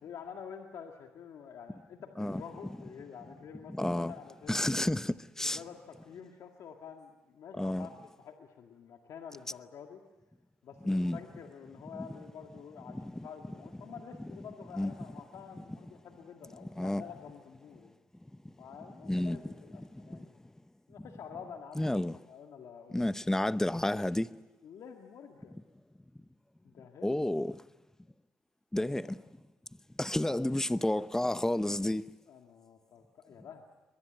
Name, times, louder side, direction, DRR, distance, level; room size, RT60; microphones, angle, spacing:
voice 1, 0.0-4.8 5.4-10.0 10.6-18.0 18.6-20.4 20.9-23.1 24.6-25.6 26.6-27.2 28.8-29.1 32.3-33.6, left 7 dB, 65° left, 2.0 m, -48 dB
voice 2, 3.7-4.1 4.5-5.6 7.6-7.9 10.9-11.2 12.9-13.3 14.7-14.9 16.6-17.0 19.0-19.4 20.1-20.2 21.8-22.2 22.9-24.3 27.0-27.5 28.7-29.2 30.0-32.0, left 1 dB, 10° left, 0.8 m, -30 dB
23.0 x 22.0 x 9.1 m
supercardioid pair, 60°, 6 cm